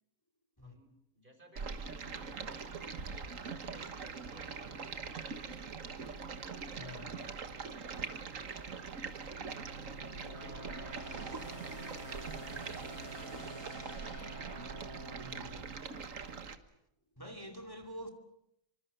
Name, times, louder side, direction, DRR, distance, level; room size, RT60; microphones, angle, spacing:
voice 1, 0.6-5.7 6.9-8.7 9.8-14.2 15.3-16.2, right 1 dB, 35° right, 5.8 m, -60 dB
Stream, 1.6-16.6, right 5 dB, 70° right, 1.8 m, -43 dB
voice 2, 6.7-7.2 15.2-15.6 17.2-18.1, equal, 15° left, 2.5 m, -47 dB
sound 1, 8.9-16.1, equal, 50° left, 4.9 m, -49 dB
26.5 x 24.5 x 6.8 m
omnidirectional pair, 1.4 m